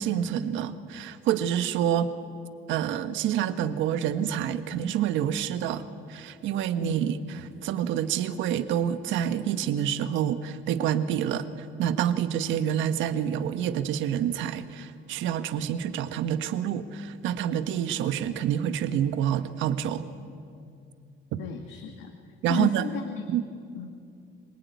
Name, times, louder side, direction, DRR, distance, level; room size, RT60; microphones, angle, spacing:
voice 1, 0.0-2.1 2.7-5.8 6.1-7.1 7.6-11.5 11.8-20.1 21.3-21.4 22.4-22.9 23.3-23.4, right 10 dB, 80° right, 10 dB, 1.4 m, -27 dB
voice 2, 6.8-7.2 21.4-22.1 22.5-23.2 23.7-23.9, left 8 dB, 65° left, 3 dB, 2.0 m, -34 dB
25.5 x 22.5 x 9.5 m, 2.4 s
cardioid pair, 175°, 19 cm